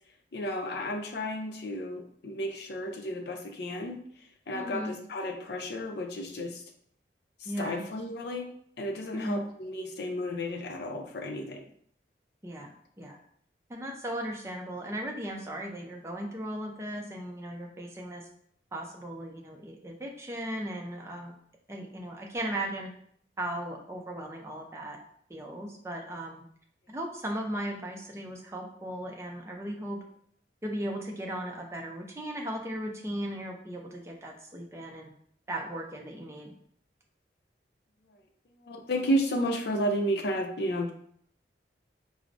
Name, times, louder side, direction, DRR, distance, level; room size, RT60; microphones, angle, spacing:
voice 1, 0.3-4.0 4.5-6.6 7.4-8.5 8.8-11.7 38.6-40.9, equal, 65° left, 3 dB, 0.5 m, -32 dB
voice 2, 4.5-4.9 7.4-7.8 9.1-9.4 12.4-13.2 13.7-18.3 18.7-21.3 21.7-22.9 23.4-25.0 25.3-26.4 26.9-30.0 30.6-35.1 35.5-36.6, right 1 dB, 15° right, 0 dB, 0.4 m, -37 dB
4.5 x 2.0 x 2.5 m, 0.64 s
head